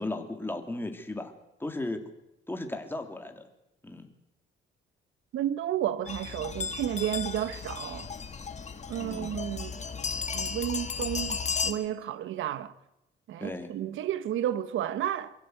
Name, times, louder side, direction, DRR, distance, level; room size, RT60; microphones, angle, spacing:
voice 1, 0.0-1.3 1.6-2.1 2.5-3.5 3.8-4.1 9.0-9.4 13.4-13.7, left 2 dB, 10° left, 3.0 m, -36 dB
voice 2, 5.3-8.1 8.9-9.8 10.3-12.7 13.3-15.4, right 11 dB, 80° right, 1.2 m, -32 dB
sound 1, 6.1-11.7, left 5 dB, 35° left, 2.0 m, -34 dB
23.5 x 15.5 x 8.1 m
cardioid pair, 90°, 20 cm